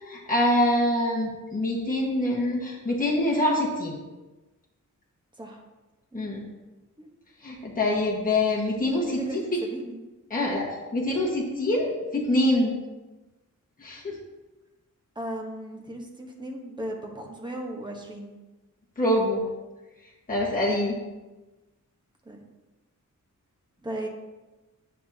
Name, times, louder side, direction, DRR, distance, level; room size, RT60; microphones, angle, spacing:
voice 1, 0.1-3.9 6.1-6.4 7.4-9.4 10.3-12.8 13.8-14.1 19.0-19.4 20.3-20.9, left 1 dB, 25° left, -5 dB, 1.5 m, -25 dB
voice 2, 9.1-10.0 15.1-18.3 22.2-22.4 23.8-24.1, right 1 dB, 15° right, 0 dB, 1.1 m, -36 dB
9.2 x 7.4 x 2.8 m, 1.1 s
wide cardioid pair, 155°, 31 cm